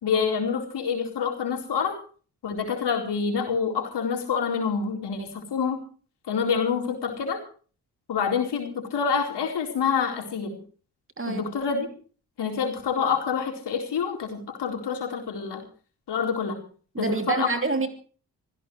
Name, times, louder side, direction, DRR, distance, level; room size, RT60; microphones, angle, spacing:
voice 1, 0.0-2.0 2.4-5.8 6.3-7.4 8.1-10.6 11.3-11.9 12.4-15.6 16.1-16.6 17.0-17.5, left 6 dB, 70° left, 4.4 m, -27 dB
voice 2, 16.9-17.9, right 3 dB, 30° right, 3.0 m, -26 dB
25.5 x 16.0 x 3.3 m
supercardioid pair, 50°, 42 cm